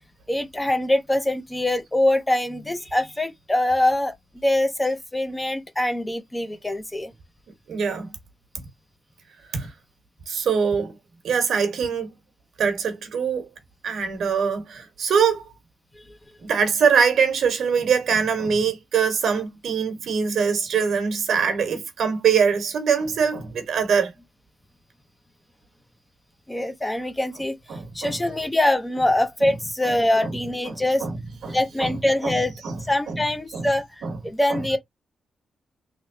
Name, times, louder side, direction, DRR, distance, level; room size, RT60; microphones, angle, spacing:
voice 1, 0.3-7.1 15.9-16.0 26.5-27.6 27.9-31.1 31.5-32.5 32.9-34.8, left 1 dB, 10° left, 0.7 m, -23 dB
voice 2, 7.7-8.1 9.5-9.7 10.3-10.9 11.2-12.1 12.6-13.5 13.8-15.4 16.5-24.1 27.7-28.1 31.0-31.1 31.4-31.9 32.2-32.3 32.6-32.8 33.1-33.2 33.5-33.7 34.0-34.1 34.5-34.6, right 6 dB, 80° right, 1.2 m, -23 dB
3.4 x 3.0 x 2.7 m
wide cardioid pair, 140°, 0 cm